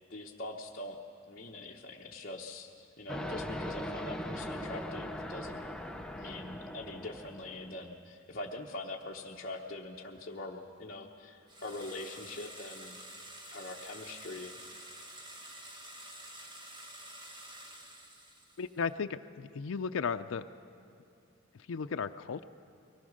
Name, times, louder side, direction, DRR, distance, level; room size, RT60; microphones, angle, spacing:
voice 1, 0.1-1.0 1.3-2.7 3.0-5.6 5.9-13.0 13.5-14.6, left 2 dB, 45° left, -3 dB, 1.0 m, -43 dB
sound 1, 3.1-7.8, left 1 dB, 5° left, 0.6 m, -40 dB
sound 2, 11.5-18.8, right 1 dB, 25° right, 1.4 m, -49 dB
voice 2, 18.6-20.5 21.7-22.4, left 5 dB, 90° left, 7 dB, 0.5 m, -35 dB
23.5 x 18.5 x 6.4 m, 2.6 s
head